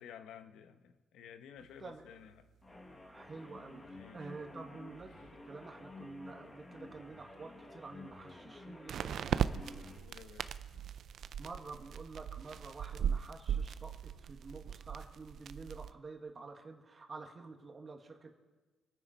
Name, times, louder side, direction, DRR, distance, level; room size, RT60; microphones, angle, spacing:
voice 1, 0.0-2.5 3.8-4.3 5.1-5.2 9.8-10.9, left 8 dB, 85° left, 9 dB, 1.1 m, -54 dB
sound 1, 2.1-2.2 8.9-15.9, right 8 dB, 65° right, 0.6 m, -38 dB
sound 2, 2.6-10.0, left 2 dB, 25° left, 2.1 m, -52 dB
voice 2, 3.0-9.9 11.4-18.3, right 3 dB, 35° right, 3 dB, 2.0 m, -49 dB
26.0 x 9.8 x 4.5 m, 1.2 s
cardioid pair, 90°, 0 cm